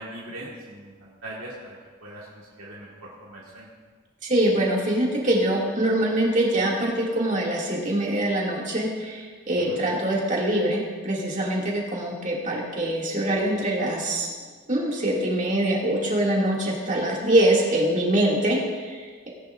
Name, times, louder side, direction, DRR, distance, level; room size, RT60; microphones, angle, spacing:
voice 1, 0.0-3.7 9.7-9.8, right 1 dB, 85° right, -6 dB, 1.8 m, -41 dB
voice 2, 4.2-14.3 14.7-19.3, right 1 dB, 35° right, -3 dB, 2.3 m, -24 dB
18.5 x 10.5 x 2.5 m, 1.5 s
head